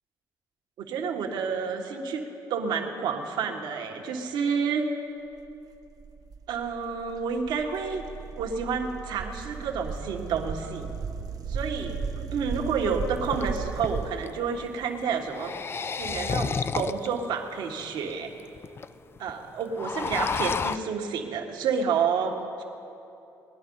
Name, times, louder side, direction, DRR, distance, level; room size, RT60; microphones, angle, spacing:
voice 1, 0.8-2.2 2.5-4.9 6.5-8.0 8.4-10.9 11.5-15.5 16.0-18.3 19.2-22.4, right 6 dB, 80° right, 2 dB, 1.5 m, -29 dB
sound 1, 5.5-14.1, right 6 dB, 55° right, 0.6 m, -36 dB
sound 2, 12.5-12.6 13.1-14.3 15.2-17.2 17.8-17.9 18.1-18.2 18.4-18.9 19.2-19.3 19.6-20.8, left 5 dB, 30° left, 0.4 m, -31 dB
19.5 x 10.5 x 5.5 m, 2.8 s
cardioid pair, 85°, 8 cm